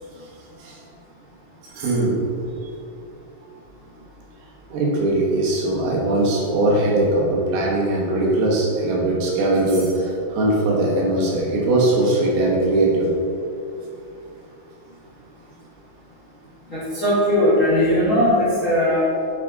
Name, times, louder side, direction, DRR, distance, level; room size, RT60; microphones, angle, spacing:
voice 1, 1.7-2.3 4.7-13.1, right 2 dB, 80° right, -3 dB, 3.2 m, -20 dB
voice 2, 16.7-19.1, left 1 dB, 30° left, -12 dB, 1.6 m, -19 dB
10.0 x 4.8 x 3.9 m, 2.6 s
omnidirectional pair, 4.2 m